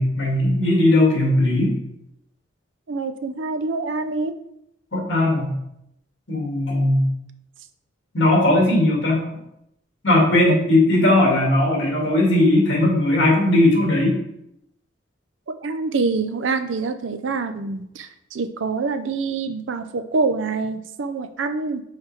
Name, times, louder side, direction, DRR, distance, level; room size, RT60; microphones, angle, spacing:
voice 1, 0.0-1.7 4.9-5.5 6.3-7.1 8.1-9.2 10.0-14.2, left 1 dB, 75° left, -2 dB, 2.4 m, -18 dB
voice 2, 2.9-4.3 10.5-10.6 15.6-21.8, right 4 dB, 90° right, 9 dB, 0.5 m, -25 dB
5.7 x 4.4 x 4.4 m, 0.80 s
head